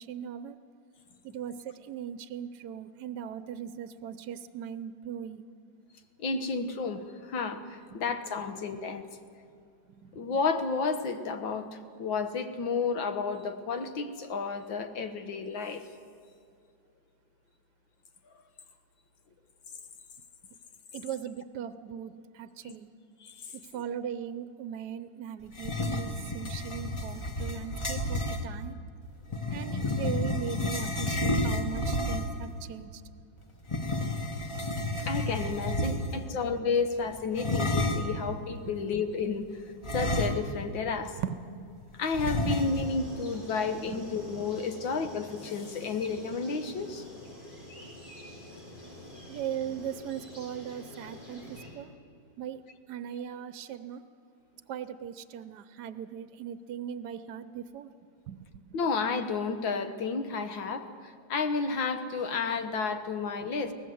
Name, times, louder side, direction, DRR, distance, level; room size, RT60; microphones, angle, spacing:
voice 1, 0.1-0.6 1.2-5.4 10.0-10.1 20.9-22.9 23.5-28.8 29.5-33.0 34.6-34.8 35.8-36.4 38.6-38.7 41.2-41.5 43.9-44.0 49.3-51.9 52.4-52.6 52.9-54.0 54.7-57.9 58.3-58.5, right 9 dB, 70° right, 13 dB, 1.2 m, -39 dB
voice 2, 6.2-7.6 7.9-9.1 10.2-11.7 12.0-15.8 22.7-22.8 23.2-23.3 35.1-39.5 39.9-41.1 42.0-47.0 58.7-60.9 61.3-63.7, left 4 dB, 85° left, 8 dB, 2.0 m, -31 dB
sound 1, 25.5-28.4 29.3-32.4 33.6-36.3 37.3-38.2 39.8-40.7 41.0-41.1 42.1-43.0, left 1 dB, 20° left, 1.1 m, -31 dB
sound 2, 42.4-51.7, left 1 dB, 60° left, 8.5 m, -47 dB
23.0 x 18.0 x 7.8 m, 2.4 s
omnidirectional pair, 2.0 m